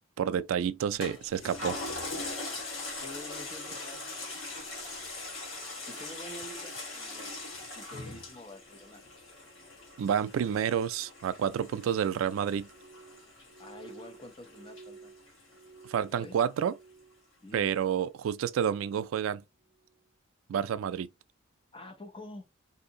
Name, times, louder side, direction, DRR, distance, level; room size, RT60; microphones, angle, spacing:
voice 1, 0.2-1.8 10.0-12.7 15.9-16.7 17.5-19.4 20.5-21.1, right 8 dB, 85° right, 0.3 m, -29 dB
Toilet flush, 1.0-15.8 16.3-16.4, left 2 dB, 85° left, 1.3 m, -41 dB
voice 2, 3.0-4.4 5.9-7.3 7.7-9.0 13.6-15.1 16.1-16.4 17.4-17.7 21.7-22.5, left 1 dB, 25° left, 0.7 m, -47 dB
Glass, 12.7-17.2 17.5-18.2 18.6-19.1 19.7-20.0, right 4 dB, 10° right, 0.6 m, -54 dB
2.7 x 2.4 x 3.7 m
head